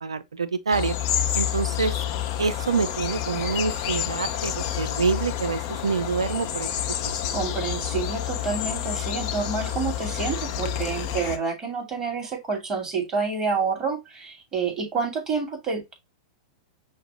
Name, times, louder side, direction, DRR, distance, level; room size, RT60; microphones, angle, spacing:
voice 1, 0.0-1.0 1.3-1.9 2.4-6.7, right 5 dB, 85° right, 0.6 m, -26 dB
sound 1, 0.7-11.4, left 10 dB, 45° left, 0.8 m, -29 dB
voice 2, 7.3-15.9, right 5 dB, 25° right, 2.7 m, -28 dB
5.8 x 2.4 x 3.7 m
hypercardioid pair, 105°, 3 cm